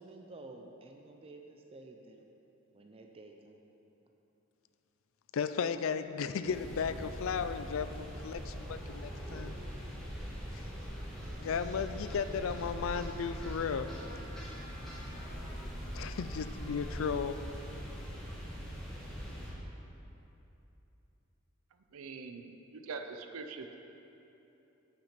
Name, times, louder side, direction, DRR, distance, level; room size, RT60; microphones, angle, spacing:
voice 1, 0.0-2.3 2.7-3.6, right 2 dB, 25° right, 2 dB, 0.5 m, -51 dB
voice 2, 5.3-9.5 10.5-10.6 11.4-13.9 15.9-17.4, left 6 dB, 65° left, 11 dB, 0.4 m, -35 dB
sound 1, 6.5-19.5, equal, ahead, 1.6 m, -42 dB
Trumpet, 12.8-19.9, left 1 dB, 15° left, 1.0 m, -57 dB
voice 3, 21.9-23.8, right 4 dB, 80° right, 7 dB, 0.5 m, -43 dB
8.3 x 6.0 x 5.8 m, 3.0 s
head